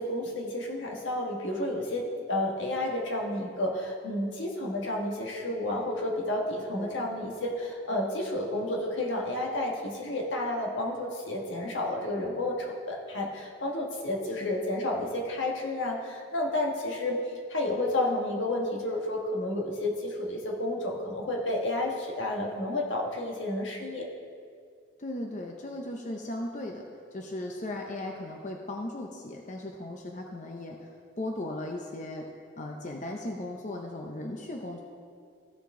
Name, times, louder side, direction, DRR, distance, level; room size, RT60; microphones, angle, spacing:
voice 1, 0.0-17.2 17.5-24.1, left 1 dB, 80° left, -1 dB, 1.5 m, -31 dB
voice 2, 25.0-30.9 31.2-32.3 32.6-34.8, left 1 dB, 40° left, 1 dB, 0.6 m, -37 dB
15.0 x 5.8 x 3.7 m, 2.3 s
head